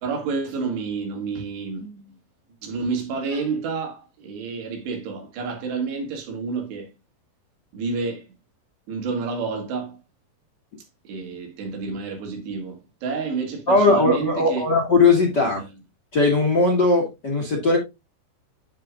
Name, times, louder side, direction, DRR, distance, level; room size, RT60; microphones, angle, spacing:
voice 1, 0.0-2.2 2.6-7.0 7.7-8.3 8.9-10.0 11.1-14.6, right 4 dB, 80° right, 4.4 m, -29 dB
voice 2, 13.7-15.6 16.1-17.8, left 3 dB, 35° left, 1.8 m, -19 dB
9.4 x 8.2 x 2.4 m
omnidirectional pair, 4.8 m